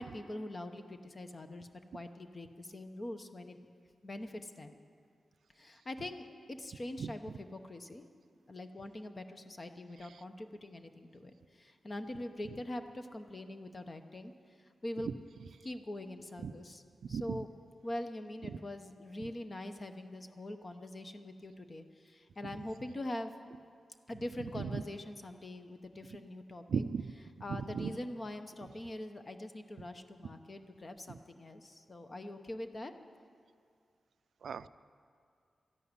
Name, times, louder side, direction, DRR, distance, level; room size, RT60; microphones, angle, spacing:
voice 1, 0.0-1.7 1.9-3.6 4.0-4.8 5.6-8.1 8.5-14.3 14.8-15.1 15.6-16.8 17.1-17.5 17.8-23.3 24.1-26.8 27.4-32.9, left 1 dB, 30° left, 7 dB, 0.8 m, -43 dB
voice 2, 17.0-17.4 18.4-18.6 19.2-19.3 22.4-22.5 24.5-24.8 26.7-27.1 27.5-28.0 31.1-31.2 34.4-34.7, right 6 dB, 85° right, 15 dB, 0.4 m, -36 dB
13.0 x 11.0 x 9.6 m, 2.2 s
wide cardioid pair, 165°, 0 cm